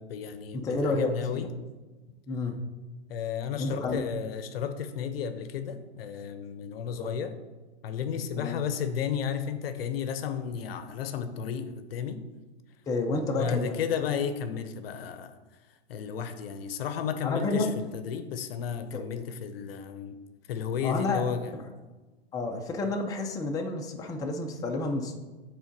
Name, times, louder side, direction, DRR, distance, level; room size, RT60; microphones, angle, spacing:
voice 1, 0.0-1.5 3.1-7.3 7.8-12.3 13.2-15.4 15.9-20.2 20.5-21.6, left 7 dB, 60° left, 10 dB, 0.8 m, -33 dB
voice 2, 0.5-1.5 2.3-2.6 3.6-4.0 6.9-7.1 8.4-8.6 12.9-13.8 17.2-17.7 18.9-19.0 20.8-21.6 22.3-25.2, left 2 dB, 10° left, 1 dB, 0.6 m, -30 dB
7.2 x 3.7 x 5.2 m, 1.2 s
hypercardioid pair, 120°, 34 cm